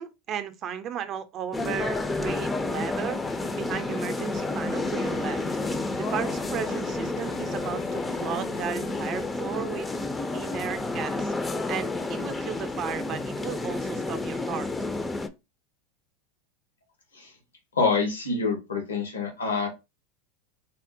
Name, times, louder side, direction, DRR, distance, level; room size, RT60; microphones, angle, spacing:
voice 1, 0.0-3.2 3.5-5.4 5.9-9.9 10.3-11.3 11.7-14.7, right 9 dB, 40° right, 0.5 m, -35 dB
sound 1, 1.5-15.3, left 2 dB, 15° left, 0.4 m, -30 dB
sound 2, 3.2-9.3, left 7 dB, 60° left, 0.6 m, -43 dB
voice 2, 17.7-19.7, left 4 dB, 90° left, 1.1 m, -26 dB
3.6 x 2.1 x 2.6 m
hypercardioid pair, 90°, 0 cm